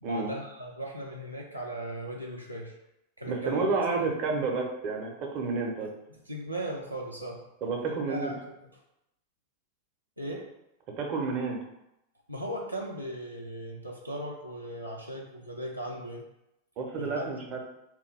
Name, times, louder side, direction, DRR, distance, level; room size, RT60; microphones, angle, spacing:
voice 1, 0.0-2.7 3.2-3.8 6.3-7.4 7.9-8.4 10.2-10.5 12.3-16.2 17.0-17.3, right 1 dB, 85° right, -1 dB, 0.4 m, -37 dB
voice 2, 3.3-5.9 7.6-8.3 11.0-11.6 16.8-17.6, right 4 dB, 40° right, 1 dB, 0.6 m, -30 dB
3.0 x 2.3 x 3.3 m, 0.85 s
figure-of-eight pair, 90°, 0 cm